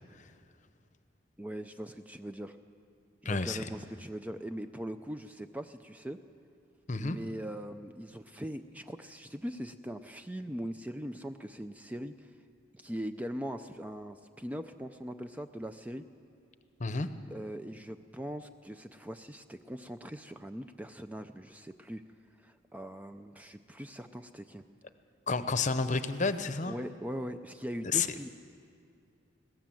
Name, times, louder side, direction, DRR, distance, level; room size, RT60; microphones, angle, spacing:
voice 1, 1.4-2.6 3.2-6.2 7.0-12.3 12.7-16.0 17.3-22.0 22.4-24.6 26.6-28.3, equal, 10° right, 8 dB, 0.4 m, -41 dB
voice 2, 3.2-3.7 6.9-7.2 16.8-17.1 25.3-26.7 27.8-28.1, left 4 dB, 40° left, 11 dB, 0.8 m, -30 dB
20.5 x 17.0 x 7.6 m, 2.4 s
head